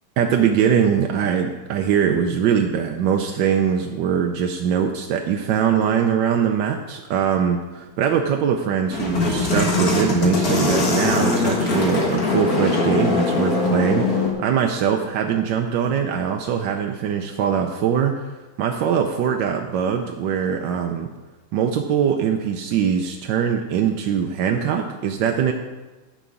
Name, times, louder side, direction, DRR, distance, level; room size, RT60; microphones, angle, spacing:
voice 1, 0.2-21.1 21.5-25.5, right 8 dB, 85° right, 3 dB, 1.4 m, -22 dB
sound 1, 8.9-14.3, left 3 dB, 55° left, 1.9 m, -21 dB
10.0 x 4.9 x 7.0 m, 1.2 s
omnidirectional pair, 1.9 m